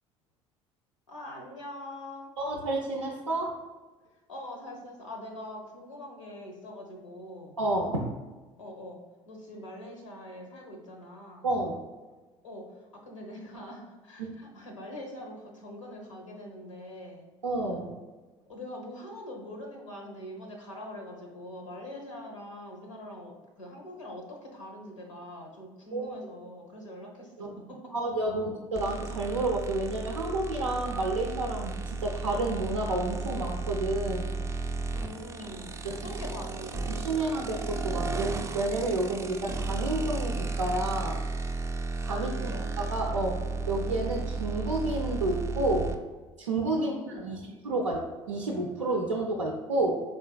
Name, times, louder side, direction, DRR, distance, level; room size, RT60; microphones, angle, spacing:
voice 1, 1.1-2.3 4.3-7.6 8.6-9.0 9.3-11.5 12.4-17.3 18.5-27.9 28.4-28.5 34.9-37.5 42.2-42.7 46.8-47.7, left 1 dB, 85° left, 1 dB, 0.7 m, -43 dB
voice 2, 2.4-3.5 7.6-8.1 11.4-11.8 14.2-14.3 17.4-17.9 25.9-26.2 27.4-27.5 27.9-31.7 32.0-34.3 35.8-36.0 36.9-41.2 42.0-45.9 46.4-47.4 47.6-50.0, right 2 dB, 85° right, -1 dB, 0.4 m, -30 dB
sound 1, 28.7-45.9, right 3 dB, 20° right, 0.4 m, -34 dB
4.2 x 3.4 x 2.2 m, 1.3 s
figure-of-eight pair, 60°, 16 cm